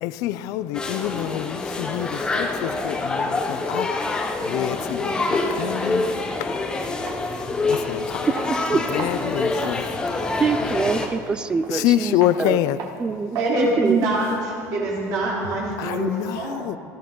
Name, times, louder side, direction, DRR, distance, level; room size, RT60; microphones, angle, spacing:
voice 1, 0.0-6.1 6.4-6.7 7.7-8.2 8.7-10.4 11.7-12.8 15.8-16.8, left 13 dB, 60° left, 0.4 m, -27 dB
sound 1, 0.7-11.1, left 3 dB, 15° left, 0.8 m, -26 dB
sound 2, 7.1-7.2 7.7-8.0 8.4-9.9 10.3-10.4 11.0-11.2 11.6-11.9 12.2-12.4 12.8-13.0 13.4-13.6 13.9-15.8, right 4 dB, 50° right, 1.4 m, -38 dB
voice 2, 10.4-12.6 13.0-14.0, right 5 dB, 15° right, 0.3 m, -24 dB
voice 3, 13.3-16.7, right 2 dB, 65° right, 4.2 m, -24 dB
17.0 x 14.5 x 3.8 m
cardioid pair, 175°, 7 cm